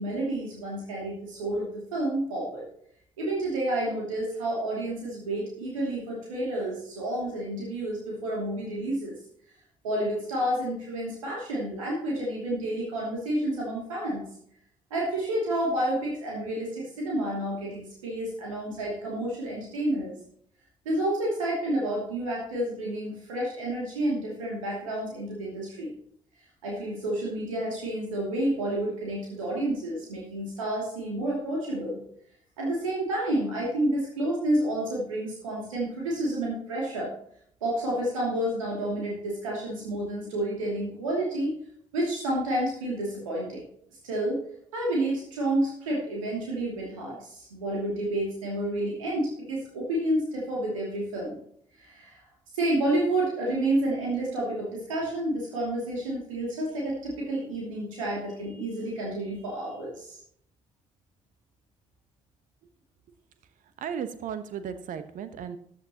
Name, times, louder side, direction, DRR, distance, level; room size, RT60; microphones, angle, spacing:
voice 1, 0.0-2.6 3.2-9.1 9.8-14.2 14.9-20.2 20.8-25.9 26.6-32.0 32.6-37.1 37.6-41.5 41.9-43.6 44.0-44.4 44.7-51.4 51.8-52.2 52.5-60.2, right 1 dB, 75° right, -3 dB, 2.7 m, -30 dB
voice 2, 63.8-65.6, right 8 dB, 55° right, 12 dB, 1.2 m, -35 dB
14.0 x 10.5 x 3.0 m, 0.66 s
figure-of-eight pair, 45°, 17 cm